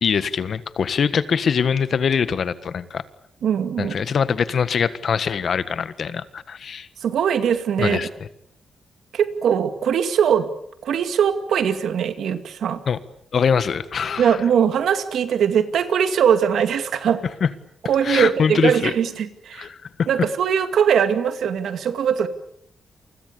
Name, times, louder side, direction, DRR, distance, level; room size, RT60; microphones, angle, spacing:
voice 1, 0.0-3.0 3.8-6.9 7.8-8.1 12.9-13.0 13.3-14.4 17.4-17.5 18.0-18.9 19.5-20.1, left 6 dB, 55° left, 14 dB, 1.5 m, -23 dB
voice 2, 3.4-4.0 7.0-8.0 9.1-10.5 10.8-12.8 14.2-17.2 17.8-19.7 20.1-22.3, right 8 dB, 80° right, 10 dB, 2.3 m, -21 dB
29.5 x 24.5 x 6.9 m, 0.70 s
cardioid pair, 110°, 0 cm